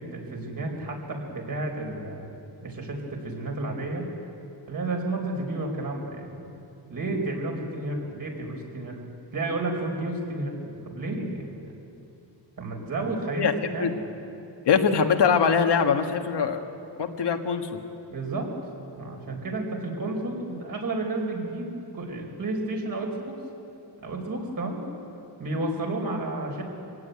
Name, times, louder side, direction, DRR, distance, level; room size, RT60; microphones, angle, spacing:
voice 1, 0.0-2.3 2.6-4.1 4.7-6.5 6.9-9.0 9.3-11.7 12.6-14.0 18.1-18.5 19.0-23.3 24.0-24.8 25.4-26.6, right 2 dB, 50° right, 1 dB, 4.7 m, -31 dB
voice 2, 13.3-13.9 14.6-16.6 17.0-17.8, left 6 dB, 70° left, 5 dB, 1.6 m, -23 dB
24.0 x 16.5 x 9.5 m, 2.8 s
wide cardioid pair, 135°, 43 cm